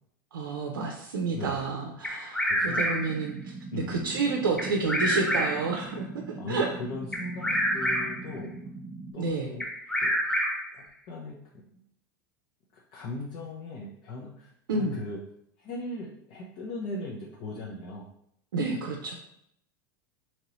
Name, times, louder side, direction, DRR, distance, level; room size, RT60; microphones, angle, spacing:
voice 1, 0.3-6.7 9.2-9.5 14.7-15.0 18.5-19.1, right 4 dB, 85° right, 0 dB, 0.4 m, -30 dB
voice 2, 1.3-1.6 2.5-2.9 3.7-4.1 6.4-6.6 6.9-8.5 9.1-9.6 10.0-10.1 10.7-11.8 12.7-15.2 15.6-18.0, left 2 dB, 50° left, -3 dB, 0.6 m, -38 dB
Bird vocalization bird call bird song, 2.0-3.2 4.6-5.8 7.1-8.3 9.6-10.8, equal, 5° left, 0.6 m, -28 dB
sound 1, 3.0-9.1, right 3 dB, 35° right, 0.7 m, -41 dB
2.9 x 2.7 x 3.0 m, 0.72 s
hypercardioid pair, 95°, 11 cm